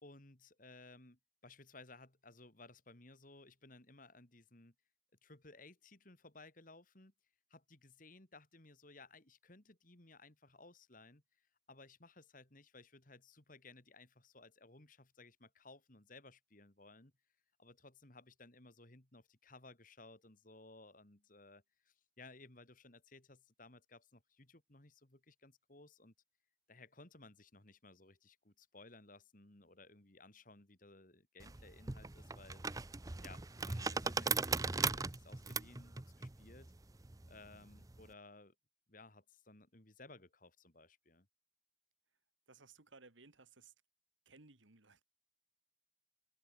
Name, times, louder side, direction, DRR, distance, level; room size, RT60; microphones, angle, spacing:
voice 1, 0.0-4.7 5.2-7.1 7.5-17.1 17.6-26.1 26.7-32.9 33.2-36.7 37.3-38.5 38.9-41.3, left 3 dB, 45° left, 2.6 m, -59 dB
sound 1, 31.4-38.1, right 4 dB, 20° right, 0.6 m, -39 dB
voice 2, 42.5-43.7 44.3-45.0, right 4 dB, 80° right, 2.6 m, -61 dB
head